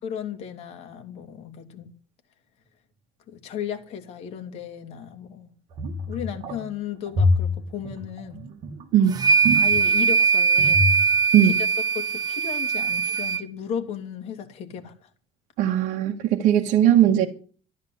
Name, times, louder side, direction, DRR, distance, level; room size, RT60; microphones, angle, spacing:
voice 1, 0.0-1.9 3.3-5.5 6.1-8.4 9.5-10.8 11.4-11.7 11.9-15.1, left 9 dB, 50° left, 2.7 m, -35 dB
sound 1, 5.7-6.6 7.1-10.2 10.6-11.1 11.4-11.5, left 2 dB, 50° right, 2.5 m, -25 dB
sound 2, 9.1-13.4, right 5 dB, 30° right, 1.0 m, -21 dB
voice 2, 15.6-17.3, right 10 dB, 65° right, 1.6 m, -18 dB
13.0 x 11.5 x 7.7 m
cardioid pair, 175°, 13 cm